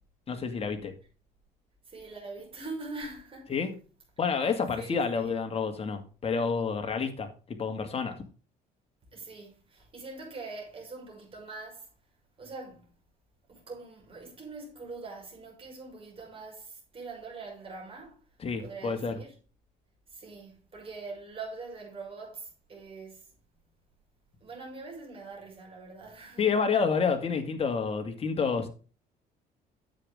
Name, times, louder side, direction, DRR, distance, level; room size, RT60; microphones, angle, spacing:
voice 1, 0.3-0.9 3.5-3.7 4.2-8.2 18.4-19.1 26.4-28.7, left 5 dB, 35° left, 2.1 m, -29 dB
voice 2, 1.9-3.5 4.8-5.2 9.1-11.9 12.4-12.9 13.5-18.2 18.6-19.3 20.1-23.3 24.4-26.5, right 3 dB, 35° right, 5.9 m, -43 dB
9.7 x 8.0 x 3.6 m
cardioid pair, 110°, 17 cm